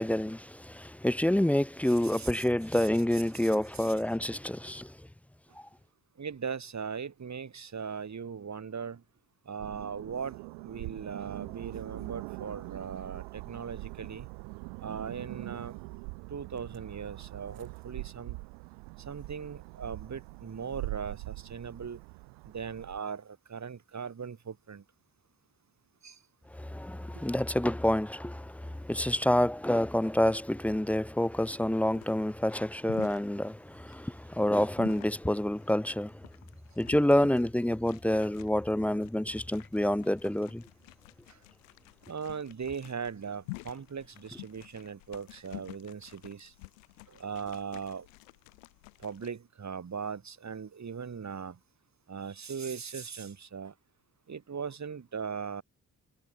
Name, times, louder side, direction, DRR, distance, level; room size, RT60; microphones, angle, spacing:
voice 1, 0.0-5.1 26.5-36.3 36.8-40.6, left 1 dB, 5° left, 0.5 m, -28 dB
voice 2, 2.0-2.4 2.7-3.9 6.2-9.0 9.5-14.3 14.8-15.8 16.3-18.4 19.0-22.0 22.4-24.8 26.0-26.2 41.3-41.4 42.1-46.5 47.1-48.1 49.0-51.6 52.1-53.7 54.3-55.6, right 6 dB, 45° right, 7.4 m, -39 dB
sound 1, 9.6-23.0, right 33 dB, 80° right, 2.2 m, -43 dB
sound 2, 31.3-49.3, left 26 dB, 85° left, 2.2 m, -50 dB
hypercardioid pair, 50°, 38 cm